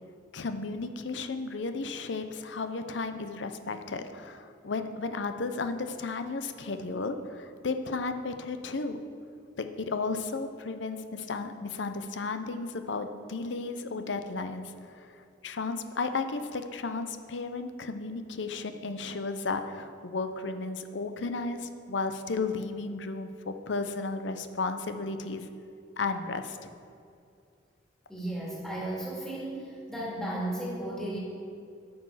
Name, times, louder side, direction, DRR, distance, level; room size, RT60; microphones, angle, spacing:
voice 1, 0.3-9.0 9.6-14.7 15.0-15.1 15.4-25.5 26.0-26.7, left 3 dB, 75° left, 8 dB, 0.7 m, -34 dB
voice 2, 28.1-31.2, right 1 dB, 5° left, -6 dB, 2.1 m, -34 dB
9.5 x 6.3 x 5.6 m, 2.4 s
head